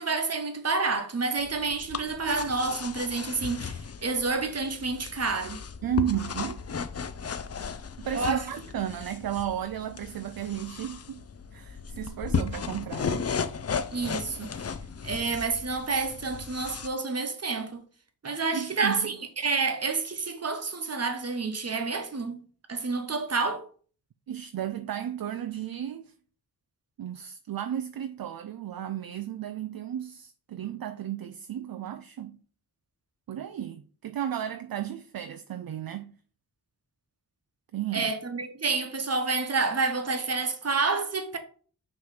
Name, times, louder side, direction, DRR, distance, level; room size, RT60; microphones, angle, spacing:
voice 1, 0.0-5.6 8.1-8.5 13.9-14.7 15.0-17.8 18.2-22.4 22.7-23.7 37.9-41.4, right 4 dB, 35° right, 1.1 m, -29 dB
sound 1, 1.4-16.9, left 6 dB, 40° left, 0.5 m, -35 dB
voice 2, 5.8-6.6 8.0-11.2 11.5-13.3 18.5-19.1 24.3-26.1 27.0-32.4 33.3-36.1 37.7-38.1, right 10 dB, 60° right, 0.5 m, -34 dB
6.1 x 3.2 x 5.7 m
wide cardioid pair, 95°, 41 cm